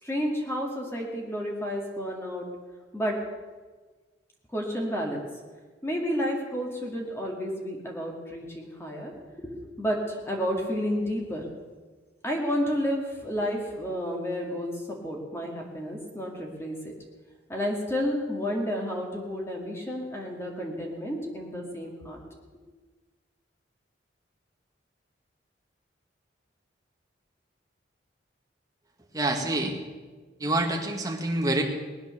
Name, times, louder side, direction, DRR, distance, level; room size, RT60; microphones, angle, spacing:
voice 1, 0.0-2.5 2.9-3.2 4.5-5.2 5.8-9.1 9.4-11.5 12.2-16.9 17.5-22.2, equal, 15° left, -1 dB, 2.3 m, -31 dB
voice 2, 29.1-29.7 30.4-31.6, right 1 dB, 20° right, 1 dB, 1.9 m, -26 dB
19.5 x 9.6 x 6.7 m, 1.4 s
head